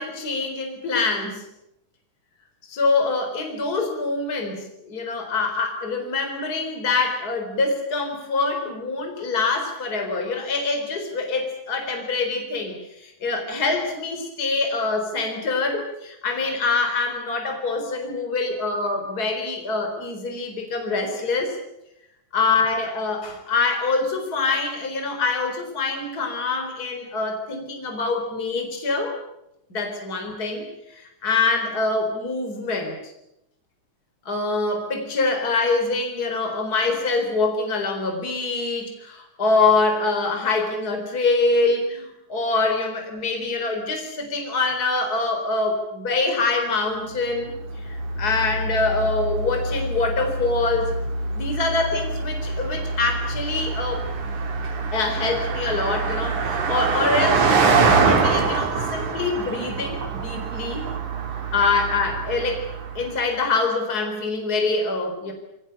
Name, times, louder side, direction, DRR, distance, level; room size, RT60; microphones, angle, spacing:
voice 1, 0.0-1.5 2.7-21.6 22.3-29.2 29.7-33.0 34.3-47.5 47.8-50.9 51.3-54.0 54.9-60.9 61.5-62.7 62.9-65.3, left 3 dB, 30° left, 4 dB, 4.4 m, -25 dB
Car passing by, 47.5-63.2, right 4 dB, 70° right, 4.4 m, -25 dB
23.5 x 19.0 x 10.0 m, 0.85 s
omnidirectional pair, 3.6 m